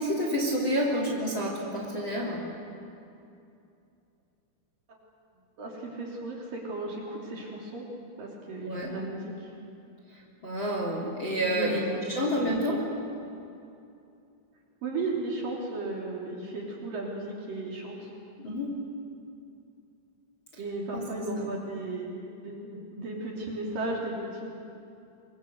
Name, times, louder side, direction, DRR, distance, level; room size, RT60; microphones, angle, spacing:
voice 1, 0.0-2.4 8.6-8.9 10.4-11.8 12.1-12.8 18.4-18.7 20.5-20.6 20.9-21.0 21.4-21.5, equal, 25° left, -1 dB, 3.2 m, -29 dB
voice 2, 5.6-7.8 8.2-9.3 11.4-12.4 14.8-18.1 20.6-22.1 22.4-24.5, right 2 dB, 45° right, -2 dB, 4.4 m, -35 dB
26.5 x 22.5 x 8.0 m, 2.6 s
omnidirectional pair, 6.0 m